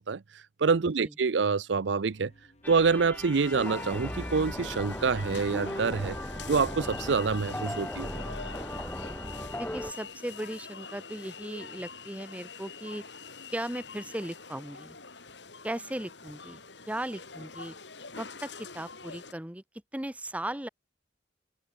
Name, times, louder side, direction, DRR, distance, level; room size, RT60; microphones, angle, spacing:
voice 1, 0.0-2.3 2.7-6.2 6.5-8.1, right 5 dB, 80° right, 0.6 m, -27 dB
voice 2, 0.8-1.1 9.6-13.0 13.5-15.0 15.6-17.8 18.2-19.6 19.9-20.7, right 1 dB, 10° right, 0.9 m, -37 dB
sound 1, 2.0-10.2, left 1 dB, 40° left, 4.8 m, -62 dB
sound 2, 2.6-9.9, left 1 dB, 10° left, 2.1 m, -37 dB
sound 3, 3.3-19.3, left 5 dB, 70° left, 4.7 m, -45 dB
open air
head